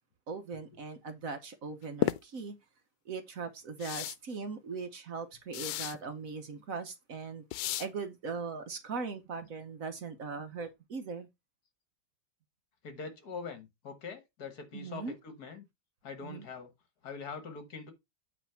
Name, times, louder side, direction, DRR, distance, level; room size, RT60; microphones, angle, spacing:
voice 1, 0.3-2.6 3.1-7.4 7.8-11.3 14.7-15.1 16.2-16.5, right 4 dB, 55° right, 1.2 m, -40 dB
sound 1, 2.0-2.2 3.8-4.2 5.5-6.0 7.5-7.9, left 15 dB, 85° left, 1.3 m, -32 dB
voice 2, 12.8-15.6 16.0-16.7 17.0-17.9, left 5 dB, 60° left, 1.9 m, -43 dB
8.6 x 3.3 x 5.6 m
omnidirectional pair, 1.9 m